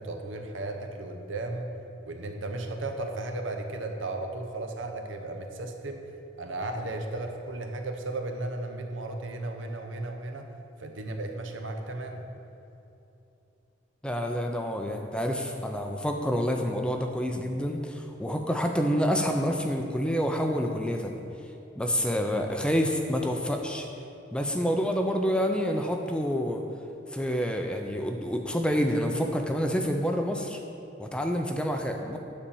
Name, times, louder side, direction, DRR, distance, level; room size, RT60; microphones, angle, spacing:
voice 1, 0.0-1.7 2.1-6.1 6.4-10.5 10.8-12.2, right 2 dB, 75° right, 4 dB, 0.9 m, -35 dB
voice 2, 14.0-21.2 21.7-23.9 24.3-26.6 27.1-30.6 31.0-32.2, equal, 5° left, 3 dB, 0.5 m, -28 dB
9.9 x 4.3 x 7.0 m, 2.8 s
head